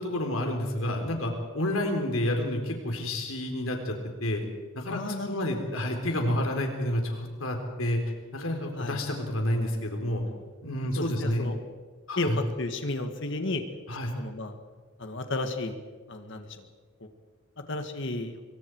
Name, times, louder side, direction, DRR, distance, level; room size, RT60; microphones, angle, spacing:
voice 1, 0.0-3.9 4.2-4.4 4.7-8.0 8.3-10.2 10.6-11.5 12.1-12.4 13.9-14.1, left 1 dB, 85° left, 3 dB, 3.9 m, -29 dB
voice 2, 4.9-5.5 8.8-9.0 11.0-11.6 12.2-13.6 14.2-14.5 15.0-15.7 16.1-16.5 17.7-18.4, left 2 dB, 60° left, 6 dB, 1.9 m, -32 dB
26.0 x 23.5 x 4.8 m, 1.4 s
head